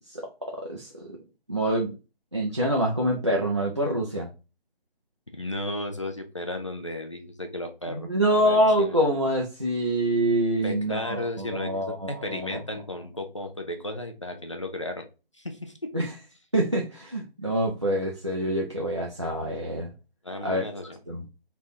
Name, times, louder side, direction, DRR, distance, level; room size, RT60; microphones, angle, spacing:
voice 1, 0.1-1.2 1.5-1.9 2.3-4.3 7.9-12.6 15.9-16.1 16.5-19.9 20.4-20.6 21.1-21.2, right 1 dB, 30° right, -1 dB, 0.4 m, -26 dB
voice 2, 5.3-8.1 8.3-9.0 10.6-15.0 15.4-15.9 20.2-21.0, left 1 dB, 30° left, 5 dB, 0.5 m, -34 dB
3.5 x 2.4 x 4.1 m, 0.31 s
figure-of-eight pair, 155°, 29 cm